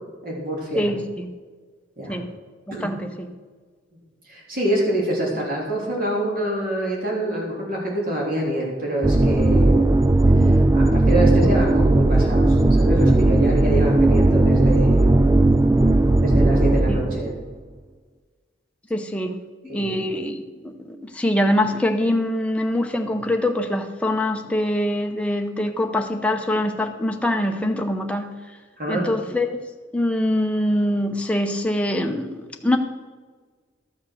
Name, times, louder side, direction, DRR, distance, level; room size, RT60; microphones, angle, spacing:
voice 1, 0.2-0.9 2.0-2.1 2.7-2.9 4.3-10.1 10.4-15.1 16.2-17.3 19.7-20.0 28.8-29.1, right 1 dB, 50° right, -3 dB, 3.4 m, -26 dB
voice 2, 0.7-1.3 2.1-2.3 2.7-3.3 16.9-17.0 18.9-19.4 19.6-28.3 28.9-29.6 29.9-32.8, left 1 dB, 5° left, 4 dB, 0.8 m, -24 dB
sound 1, 9.0-17.3, right 2 dB, 15° right, 0.3 m, -17 dB
13.0 x 6.2 x 6.4 m, 1.4 s
head